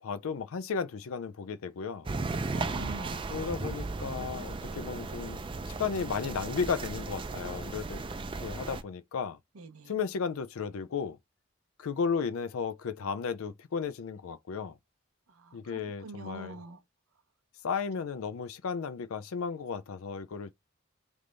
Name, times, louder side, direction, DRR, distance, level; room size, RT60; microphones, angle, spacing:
voice 1, 0.0-2.1 3.3-5.4 5.7-8.0 8.4-9.4 9.9-11.2 11.8-14.8 15.5-16.6 17.6-20.5, left 6 dB, 75° left, 0.4 m, -34 dB
sound 1, 2.0-8.8, right 3 dB, 25° right, 0.4 m, -36 dB
voice 2, 2.5-3.3 9.6-9.9 15.4-16.8, right 2 dB, 85° right, 0.8 m, -43 dB
3.4 x 3.3 x 3.8 m
head